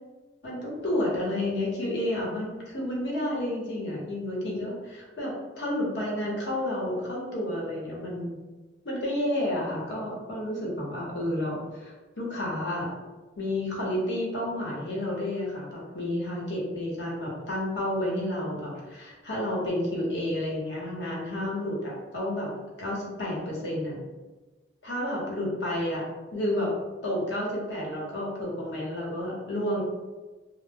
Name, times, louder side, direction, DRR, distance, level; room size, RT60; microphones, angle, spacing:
voice 1, 0.4-8.4 8.8-12.9 13.4-22.5 22.8-24.0 24.8-26.7 27.0-29.8, left 1 dB, 80° left, -4 dB, 0.9 m, -30 dB
2.1 x 2.0 x 3.3 m, 1.2 s
head